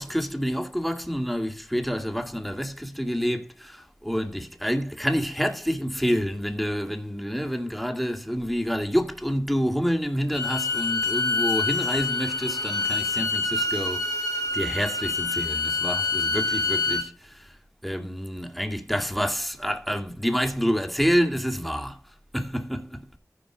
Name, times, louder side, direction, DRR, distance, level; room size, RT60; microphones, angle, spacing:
voice 1, 0.0-17.6 17.8-22.0 22.3-23.1, equal, ahead, 2.2 m, -28 dB
Bowed string instrument, 10.3-17.1, left 3 dB, 70° left, 2.8 m, -26 dB
15.0 x 5.3 x 4.9 m
wide cardioid pair, 45°, 6 cm